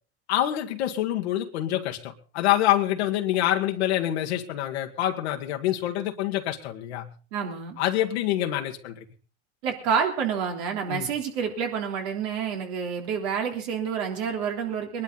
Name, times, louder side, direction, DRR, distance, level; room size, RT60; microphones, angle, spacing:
voice 1, 0.3-7.1 7.8-9.0 10.9-11.1, left 13 dB, 85° left, 3 dB, 1.7 m, -26 dB
voice 2, 7.3-7.8 9.6-15.0, right 7 dB, 75° right, 3 dB, 3.5 m, -28 dB
21.5 x 11.5 x 4.0 m, 0.37 s
supercardioid pair, 90°, 32 cm